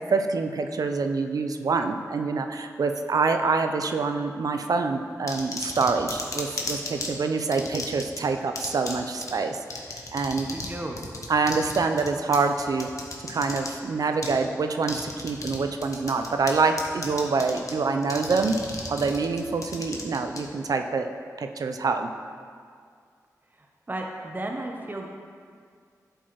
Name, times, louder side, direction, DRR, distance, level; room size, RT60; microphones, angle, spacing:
voice 1, 0.1-9.6 10.1-10.5 11.3-12.9 13.3-18.6 18.9-22.1, right 4 dB, 65° right, 6 dB, 0.5 m, -26 dB
sound 1, 5.3-7.1 7.5-8.2 8.5-8.9 9.2-9.3 9.7-10.7 11.0-13.7 14.2-14.3 14.8-15.6 15.8-16.5 16.8-17.7 18.0-20.4, left 3 dB, 55° left, 1.1 m, -34 dB
voice 2, 10.5-11.0 23.6-25.1, right 1 dB, 30° right, 1 dB, 0.7 m, -34 dB
11.0 x 4.6 x 3.0 m, 2.1 s
cardioid pair, 45°, 7 cm